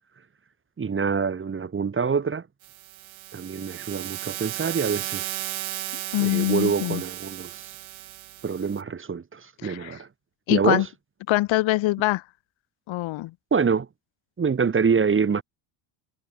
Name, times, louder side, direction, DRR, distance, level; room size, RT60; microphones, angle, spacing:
voice 1, 0.8-2.4 3.3-5.4 6.2-7.7 8.4-10.1 10.5-10.8 13.5-13.9 14.4-15.4, right 6 dB, 25° right, 1.6 m, -25 dB
sound 1, 2.6-8.8, right 16 dB, 65° right, 3.4 m, -35 dB
voice 2, 6.1-7.0 9.6-9.9 10.5-10.9 11.3-12.2 12.9-13.3, left 18 dB, 65° left, 1.7 m, -24 dB
supercardioid pair, 95°, 49 cm